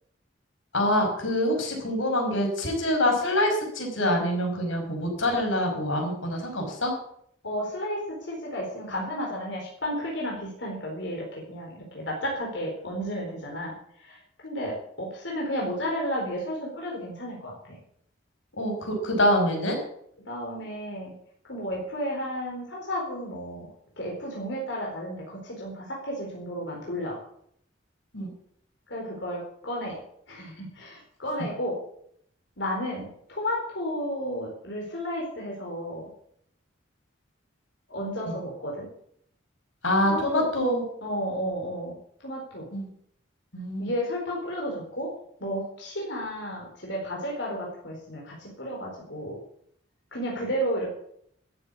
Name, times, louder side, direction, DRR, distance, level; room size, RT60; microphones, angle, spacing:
voice 1, 0.7-6.9 18.6-19.8 28.1-28.3 38.3-38.4 39.8-40.8 42.7-42.9 43.5-43.9, left 1 dB, 90° left, 2 dB, 5.3 m, -25 dB
voice 2, 7.4-13.7 14.0-17.5 20.2-21.1 21.5-23.7 24.0-27.2 28.9-30.0 30.3-31.8 32.6-36.1 37.9-38.9 40.0-40.4 41.0-42.0 42.2-42.7 43.8-45.1 45.4-49.4 50.1-50.9, equal, 70° left, -2 dB, 4.3 m, -32 dB
13.5 x 8.5 x 8.4 m, 0.67 s
head